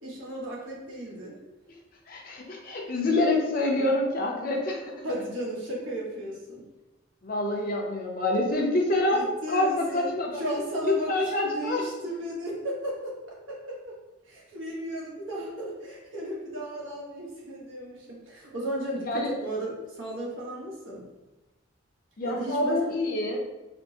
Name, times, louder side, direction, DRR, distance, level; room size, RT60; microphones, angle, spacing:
voice 1, 0.0-1.4 5.0-6.6 9.1-14.0 14.2-21.1 22.2-22.8, equal, 85° right, -5 dB, 1.0 m, -35 dB
voice 2, 2.1-4.9 7.2-9.2 9.5-10.4 10.8-11.8 19.0-19.4 22.2-23.4, left 2 dB, 45° left, 0 dB, 0.5 m, -26 dB
4.3 x 2.0 x 2.7 m, 1.1 s
head